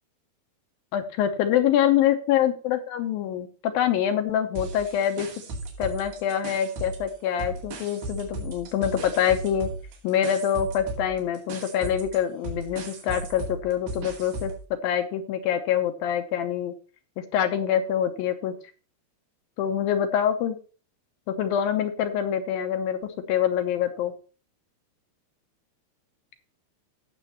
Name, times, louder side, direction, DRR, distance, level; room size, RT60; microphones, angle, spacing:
voice 1, 0.9-5.3 5.8-9.7 10.0-16.7 17.2-18.5 19.6-20.6 21.3-24.1, left 9 dB, 75° left, 7 dB, 2.5 m, -25 dB
sound 1, 4.6-7.1 7.4-14.6, right 2 dB, 80° right, 4.2 m, -36 dB
16.5 x 6.8 x 3.0 m, 0.36 s
omnidirectional pair, 4.5 m